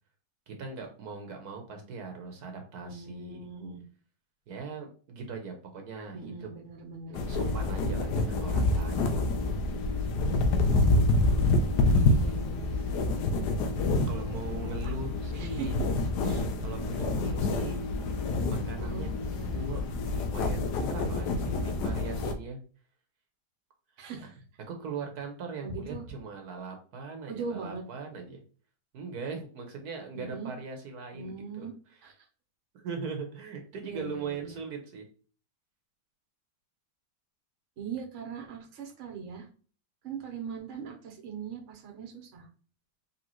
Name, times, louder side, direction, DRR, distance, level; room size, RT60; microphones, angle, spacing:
voice 1, 0.5-3.5 4.5-6.5 7.1-9.3 11.9-12.2 12.5-12.8 14.0-15.8 16.6-17.9 18.5-19.1 19.5-22.6 24.7-28.4 28.9-31.7 32.7-35.0, right 5 dB, 70° right, 3 dB, 1.3 m, -40 dB
voice 2, 2.8-3.8 6.1-7.5 12.1-12.8 14.1-15.0 15.3-15.7 16.2-16.5 18.8-19.6 24.0-24.3 25.6-26.0 27.3-27.8 30.1-30.5 31.1-31.7 32.0-32.3 33.8-34.6 37.8-39.5 40.0-42.5, right 5 dB, 55° right, 1 dB, 1.1 m, -40 dB
sound 1, 7.1-22.3, left 2 dB, 80° left, 1.2 m, -27 dB
4.1 x 3.4 x 3.0 m, 0.39 s
omnidirectional pair, 1.8 m